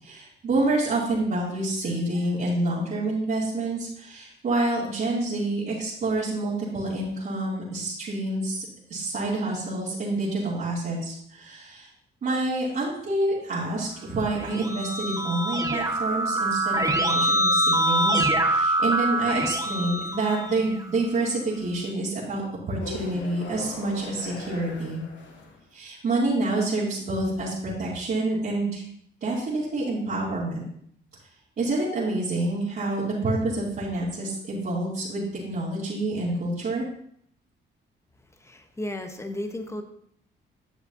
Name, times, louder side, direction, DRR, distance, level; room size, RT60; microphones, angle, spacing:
voice 1, 0.0-8.6 8.9-11.9 12.2-25.0 25.7-28.8 29.2-30.6 31.6-36.9, right 2 dB, 50° right, -10 dB, 2.7 m, -28 dB
Keyboard (musical), 14.2-20.9, right 1 dB, 15° right, 1.0 m, -25 dB
sound 1, 22.8-25.6, left 3 dB, 70° left, 1.4 m, -40 dB
voice 2, 38.4-39.8, left 1 dB, 15° left, 6 dB, 1.1 m, -34 dB
10.5 x 6.9 x 2.8 m, 0.67 s
cardioid pair, 90°, 20 cm